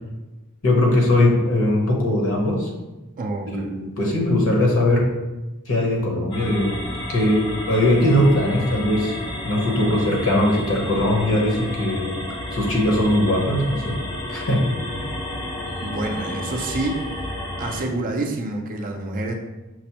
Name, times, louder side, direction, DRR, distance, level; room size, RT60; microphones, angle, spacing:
voice 1, 0.6-2.7 3.5-5.1 5.7-6.7 7.1-9.1 9.4-12.1 12.5-14.0 14.3-14.8, left 1 dB, 60° left, -1 dB, 0.9 m, -20 dB
voice 2, 3.2-3.7 15.8-17.0 17.6-19.3, right 2 dB, 40° right, 3 dB, 0.4 m, -27 dB
sound 1, 6.3-17.8, left 1 dB, 20° left, 0.5 m, -31 dB
5.8 x 2.0 x 2.8 m, 1.0 s
head